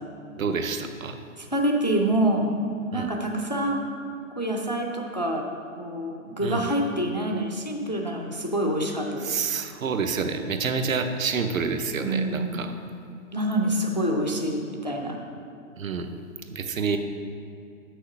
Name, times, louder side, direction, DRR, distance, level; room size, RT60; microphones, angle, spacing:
voice 1, 0.3-1.2 2.9-3.1 6.4-6.7 9.2-12.7 15.8-16.1 16.5-17.0, right 5 dB, 70° right, 7 dB, 0.8 m, -28 dB
voice 2, 1.4-2.5 2.9-3.9 4.4-5.5 5.8-9.4 12.0-12.7 13.3-15.2, right 1 dB, 35° left, 1 dB, 0.4 m, -26 dB
6.4 x 6.1 x 5.8 m, 2.5 s
hypercardioid pair, 175°, 42 cm